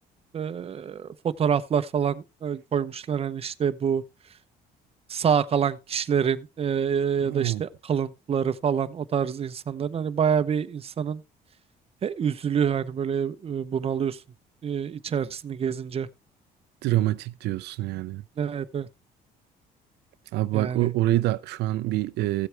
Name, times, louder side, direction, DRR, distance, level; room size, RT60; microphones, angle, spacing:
voice 1, 0.3-4.0 5.1-11.2 12.0-14.2 14.6-16.1 18.4-18.9 20.5-20.9, right 7 dB, 35° right, 0.8 m, -27 dB
voice 2, 7.3-7.6 16.8-18.2 20.3-22.5, right 15 dB, 80° right, 0.6 m, -26 dB
15.0 x 7.8 x 3.3 m
cardioid pair, 110°, 17 cm